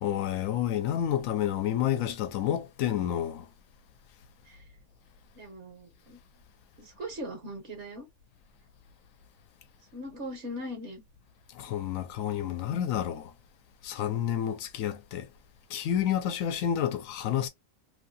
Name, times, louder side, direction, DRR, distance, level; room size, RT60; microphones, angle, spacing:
voice 1, 0.0-3.5 11.6-13.3 13.8-15.3 15.7-17.5, left 10 dB, 90° left, 1.0 m, -29 dB
voice 2, 5.3-6.2 6.8-8.1 9.9-11.0, equal, 60° right, 1.3 m, -40 dB
3.0 x 2.6 x 2.5 m
omnidirectional pair, 1.4 m